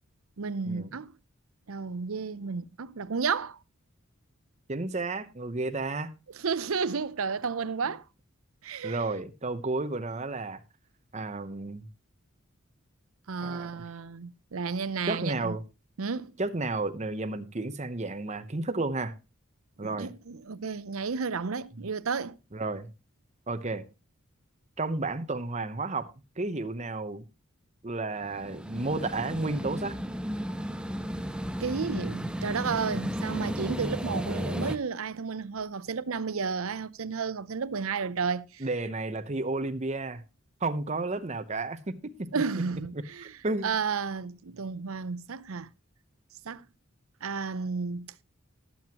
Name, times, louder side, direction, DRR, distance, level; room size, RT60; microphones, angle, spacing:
voice 1, 0.4-1.1 1.7-3.6 6.3-8.0 8.6-9.2 13.3-15.6 16.0-16.3 19.8-22.4 31.6-38.7 42.3-45.7 46.4-46.6 47.2-48.1, right 5 dB, 75° right, 0.6 m, -32 dB
voice 2, 4.7-6.1 8.8-10.6 11.1-11.9 13.4-13.8 15.1-15.6 16.4-19.1 19.8-20.1 22.5-22.9 23.5-23.8 24.8-26.1 26.4-27.2 27.8-30.0 38.6-40.2 40.6-42.6 43.4-43.7, right 2 dB, 30° right, 0.9 m, -32 dB
sound 1, 28.2-34.8, equal, 5° right, 0.5 m, -33 dB
19.5 x 7.8 x 3.0 m
head